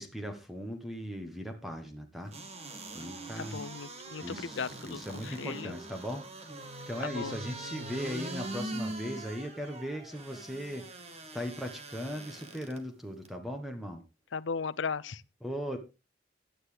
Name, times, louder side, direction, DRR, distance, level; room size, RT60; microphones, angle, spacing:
voice 1, 0.0-2.3 2.9-3.6 4.2-6.3 6.6-11.0 11.3-14.0 15.4-15.8, equal, ahead, 1.3 m, -38 dB
sound 1, 2.3-12.8 13.3-13.4, right 2 dB, 35° right, 1.9 m, -42 dB
voice 2, 3.4-5.7 7.0-7.4 14.3-15.2, left 5 dB, 80° left, 0.6 m, -37 dB
15.5 x 9.8 x 3.4 m
head